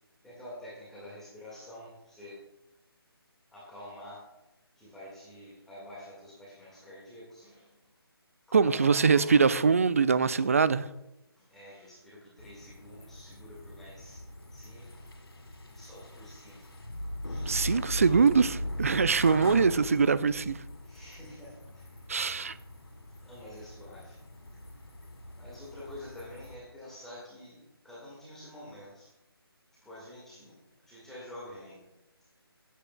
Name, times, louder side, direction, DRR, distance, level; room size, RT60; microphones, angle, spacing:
voice 1, 0.2-2.4 3.5-4.2 4.8-7.9 8.5-9.5 11.4-14.2 14.5-15.1 15.7-16.8 17.2-17.7 19.5-19.8 20.8-22.0 23.2-24.2 25.4-29.1 29.7-31.9 32.2-32.3, left 1 dB, 5° left, 1.7 m, -48 dB
voice 2, 8.5-10.9 17.5-20.6 22.1-22.6, right 5 dB, 35° right, 0.3 m, -23 dB
sound 1, 12.4-26.5, left 1 dB, 70° left, 2.2 m, -40 dB
15.0 x 8.2 x 2.2 m
figure-of-eight pair, 155°, 13 cm